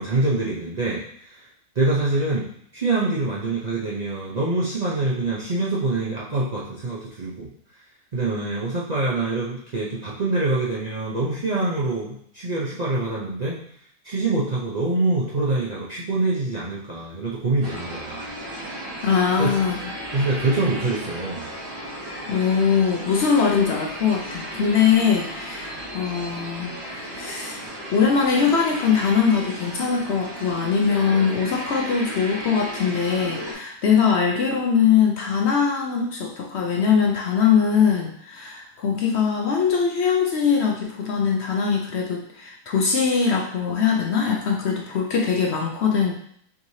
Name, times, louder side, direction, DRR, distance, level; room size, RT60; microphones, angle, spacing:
voice 1, 0.0-1.5 1.8-2.5 2.7-7.5 8.1-13.6 14.0-18.3 19.4-19.6 20.1-21.5, right 2 dB, 70° right, -7 dB, 0.4 m, -25 dB
sound 1, 17.6-33.5, right 1 dB, 90° right, 2.2 m, -35 dB
voice 2, 19.0-19.9 22.3-27.6 27.9-46.1, left 6 dB, 65° left, 0 dB, 0.7 m, -21 dB
4.8 x 3.1 x 2.7 m, 0.64 s
omnidirectional pair, 1.7 m